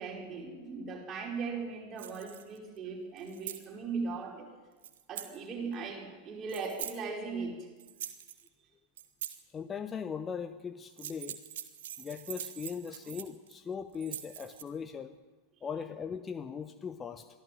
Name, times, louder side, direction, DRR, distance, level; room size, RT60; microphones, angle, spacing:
voice 1, 0.0-4.5 5.1-7.7, right 4 dB, 30° right, -1 dB, 5.1 m, -38 dB
sound 1, 2.0-2.6 3.2-3.7 4.8-5.4 6.5-7.0 7.8-8.5 9.0-9.4 10.9-13.5 13.9-14.6, right 11 dB, 55° right, 1.5 m, -43 dB
voice 2, 9.5-11.4 12.0-15.2 15.6-17.3, left 6 dB, 20° left, 10 dB, 0.8 m, -39 dB
23.5 x 15.0 x 7.7 m, 1.3 s
figure-of-eight pair, 90°, 0 cm